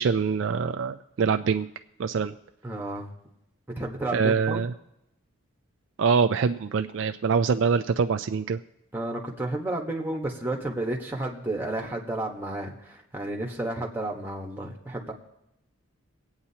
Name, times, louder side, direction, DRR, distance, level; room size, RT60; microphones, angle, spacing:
voice 1, 0.0-1.7 2.0-2.3 4.1-4.7 6.0-8.6, right 5 dB, 55° right, 8 dB, 0.3 m, -24 dB
voice 2, 2.6-3.1 3.8-4.7 8.9-15.1, right 1 dB, 10° right, 0 dB, 1.2 m, -32 dB
24.0 x 8.8 x 2.8 m, 0.86 s
head